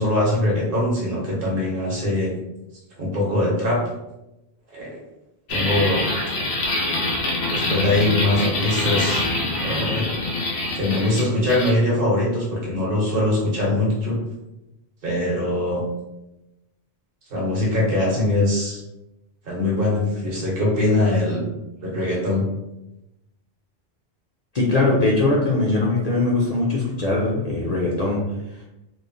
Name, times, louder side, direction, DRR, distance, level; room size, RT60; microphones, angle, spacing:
voice 1, 0.0-2.3 3.0-3.8 4.7-5.0 5.5-6.0 7.5-9.2 9.6-10.1 10.7-14.2 15.0-15.8 17.3-18.8 19.4-21.4 21.8-22.4, left 1 dB, 60° right, -4 dB, 1.0 m, -22 dB
sound 1, 5.5-11.7, left 2 dB, 80° left, 0.9 m, -24 dB
voice 2, 24.5-28.2, left 2 dB, 55° left, -4 dB, 0.5 m, -21 dB
3.0 x 2.1 x 2.5 m, 0.94 s
omnidirectional pair, 1.1 m